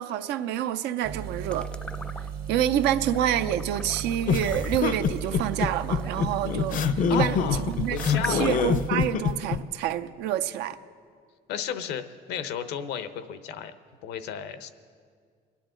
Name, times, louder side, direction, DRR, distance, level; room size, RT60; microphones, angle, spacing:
voice 1, 0.0-1.7 2.5-10.8, right 11 dB, 90° right, 11 dB, 0.6 m, -28 dB
sound 1, 1.0-8.9, right 8 dB, 65° right, 1.1 m, -36 dB
sound 2, 1.5-2.6 3.0-8.9, left 1 dB, 5° left, 0.5 m, -41 dB
sound 3, 4.3-9.6, left 7 dB, 50° left, 0.6 m, -25 dB
voice 2, 7.1-7.6 7.9-8.5 11.5-13.7 14.0-14.7, left 8 dB, 85° left, 11 dB, 0.8 m, -33 dB
23.5 x 10.0 x 3.8 m, 2.1 s
cardioid pair, 110°, 17 cm